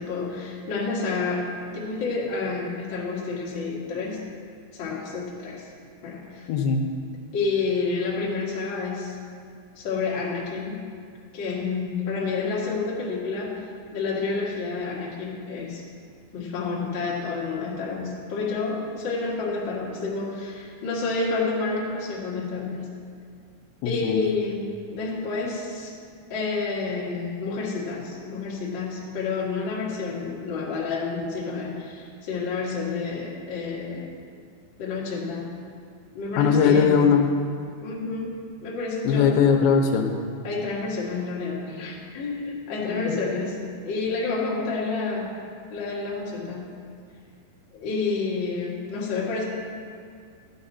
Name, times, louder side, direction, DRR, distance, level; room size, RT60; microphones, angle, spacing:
voice 1, 0.0-4.2 4.7-5.7 6.0-6.5 7.3-9.2 9.7-10.8 11.3-13.6 13.9-15.8 16.3-22.9 23.8-24.6 24.9-25.9 26.3-34.1 34.8-35.5 36.1-37.0 37.8-39.3 40.4-45.4 45.7-46.7 47.7-49.4, left 4 dB, 60° left, -5 dB, 1.2 m, -29 dB
voice 2, 6.5-6.8 23.8-24.2 36.4-37.3 39.0-40.1 42.8-43.2, left 6 dB, 85° left, 3 dB, 3.0 m, -20 dB
13.0 x 8.8 x 4.2 m, 2.2 s
omnidirectional pair, 5.2 m